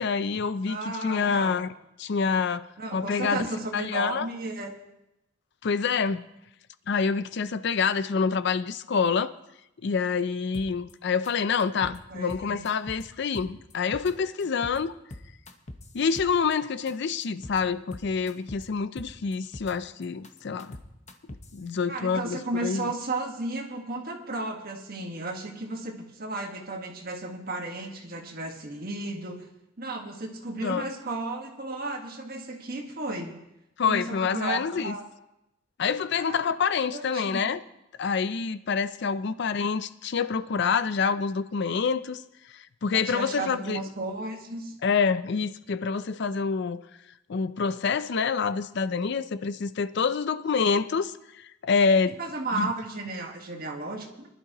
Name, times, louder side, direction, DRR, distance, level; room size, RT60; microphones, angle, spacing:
voice 1, 0.0-1.7 2.0-2.7 2.9-3.4 3.7-4.3 5.6-6.2 6.9-9.3 9.8-14.9 15.9-20.8 21.5-22.9 30.6-30.9 33.8-35.0 35.8-37.6 38.0-42.2 42.5-43.8 44.8-46.8 47.3-52.2 52.5-52.7, left 5 dB, 60° left, 13 dB, 0.5 m, -27 dB
voice 2, 0.7-1.6 2.8-4.7 12.1-12.7 21.9-29.5 29.8-33.4 33.9-35.0 36.1-36.4 36.9-37.5 42.9-44.7 52.2-54.3, right 2 dB, 50° right, 2 dB, 1.5 m, -34 dB
sound 1, 10.5-10.9 11.2-11.3 11.6-12.0 12.3-13.0 13.3-14.1 14.4-14.8 15.1-16.5 16.9-17.0 17.2-17.6 17.9-18.6 19.0-19.7 20.0-21.6, left 1 dB, 35° left, 0.9 m, -42 dB
21.5 x 11.5 x 3.0 m, 0.87 s
head